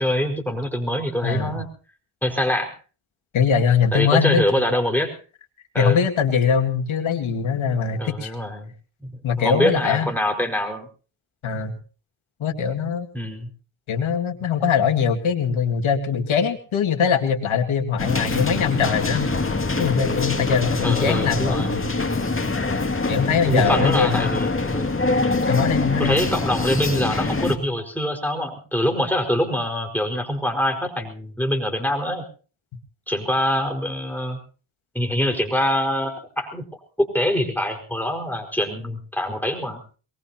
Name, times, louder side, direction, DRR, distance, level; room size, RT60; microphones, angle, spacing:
voice 1, 0.0-1.7 2.2-2.7 3.9-5.1 5.7-6.0 8.0-8.7 9.0-9.1 9.4-10.9 13.1-13.5 20.8-21.7 23.5-24.9 26.0-32.2 33.1-34.4 34.9-36.7 37.0-39.8, equal, 5° left, 3 dB, 4.9 m, -24 dB
voice 2, 1.2-1.6 3.3-4.5 5.8-8.3 9.2-10.1 11.4-11.8 12.4-13.1 13.9-19.3 19.8-21.9 23.1-24.3 25.5-26.2, left 6 dB, 75° left, 6 dB, 2.2 m, -22 dB
sound 1, 18.0-27.6, left 3 dB, 25° left, 2.4 m, -24 dB
22.5 x 20.5 x 2.9 m, 0.37 s
cardioid pair, 55°, 47 cm